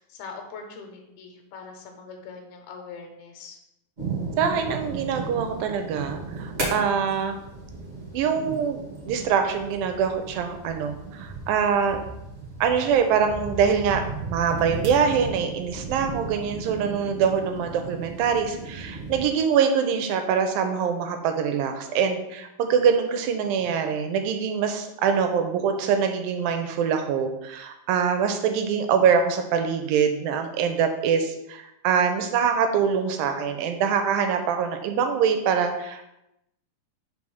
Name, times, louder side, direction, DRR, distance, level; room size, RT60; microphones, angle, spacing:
voice 1, 0.0-3.6, left 5 dB, 85° left, 3 dB, 2.8 m, -42 dB
sound 1, 4.0-19.2, right 3 dB, 40° right, 0.9 m, -35 dB
voice 2, 4.4-7.4 8.1-8.8 9.0-12.0 12.6-36.0, right 7 dB, 80° right, 6 dB, 2.2 m, -24 dB
4.9 x 4.7 x 5.5 m, 0.85 s
omnidirectional pair, 4.5 m